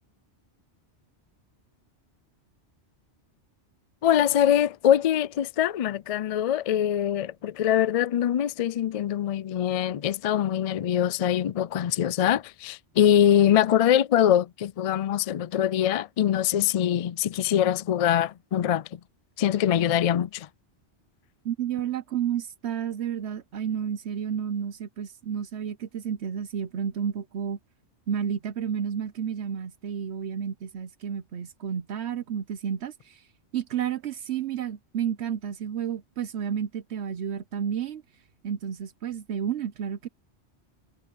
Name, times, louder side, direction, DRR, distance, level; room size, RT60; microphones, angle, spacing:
voice 1, 4.0-19.0 19.4-20.5, left 10 dB, 75° left, 0.3 m, -23 dB
voice 2, 21.4-27.6 28.1-33.2 33.5-38.0 38.4-40.1, right 8 dB, 70° right, 1.0 m, -31 dB
omnidirectional pair, 1.2 m